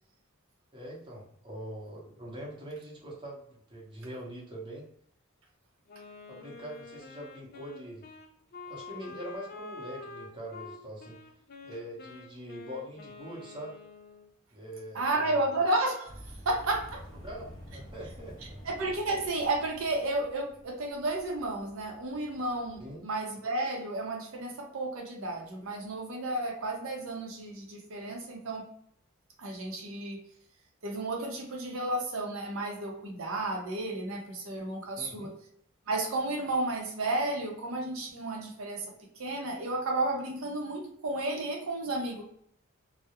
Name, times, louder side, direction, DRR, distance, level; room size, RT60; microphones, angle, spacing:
voice 1, 0.7-4.9 6.3-8.1 8.7-11.2 11.6-13.7 14.5-15.5 17.1-18.6 22.8-23.0 35.0-35.3, equal, 20° right, -5 dB, 0.7 m, -43 dB
Wind instrument woodwind instrument, 5.9-14.3, left 3 dB, 45° left, 0.3 m, -47 dB
voice 2, 14.9-16.1 16.5-17.0 18.6-28.6 29.4-30.2 30.8-35.3 35.9-38.9 39.2-42.2, right 2 dB, 75° right, 0 dB, 0.6 m, -32 dB
sound 1, 16.0-23.0, equal, 20° left, 0.7 m, -49 dB
2.3 x 2.0 x 2.8 m, 0.66 s
head